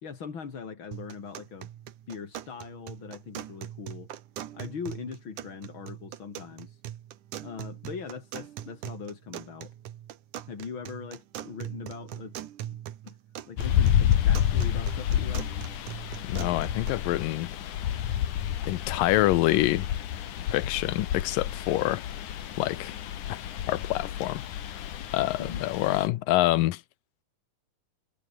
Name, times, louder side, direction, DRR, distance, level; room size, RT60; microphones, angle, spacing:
voice 1, 0.0-1.7 2.1-4.1 4.5-6.8 7.4-9.7 10.5-12.3 13.0-13.2 13.5-15.5 25.4-25.6, left 6 dB, 40° left, 3.1 m, -40 dB
sound 1, 0.9-16.9, right 11 dB, 65° right, 2.8 m, -42 dB
sound 2, 13.6-26.1, left 10 dB, 65° left, 3.1 m, -29 dB
voice 2, 16.3-17.5 18.7-19.9 20.5-22.0 22.6-23.0 23.3-23.4 23.7-24.4 25.1-26.8, left 16 dB, 85° left, 2.5 m, -26 dB
omnidirectional pair, 4.0 m